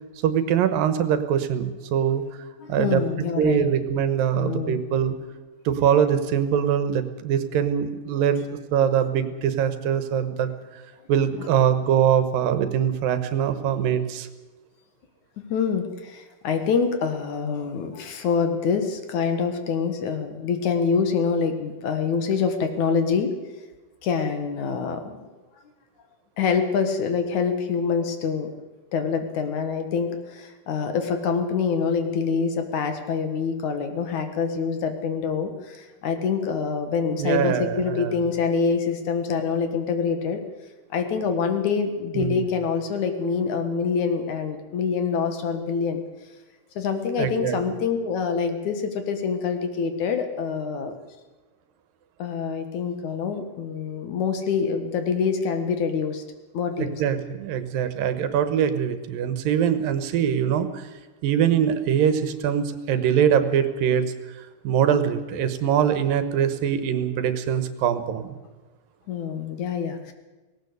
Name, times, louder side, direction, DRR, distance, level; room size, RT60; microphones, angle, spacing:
voice 1, 0.2-2.2 2.7-3.0 3.4-5.1 5.7-8.4 8.7-10.5 11.1-14.3 37.2-38.2 42.1-42.4 47.2-47.6 56.8-60.9 61.2-64.0 64.6-68.4, right 8 dB, 85° right, 11 dB, 2.9 m, -23 dB
voice 2, 2.6-3.7 4.3-4.9 15.5-23.3 24.0-25.1 26.4-28.5 28.9-40.4 40.9-46.0 46.8-51.0 52.2-56.2 56.5-57.0 69.1-70.1, left 5 dB, 60° left, 7 dB, 2.8 m, -25 dB
18.0 x 17.5 x 8.2 m, 1.2 s
omnidirectional pair, 4.0 m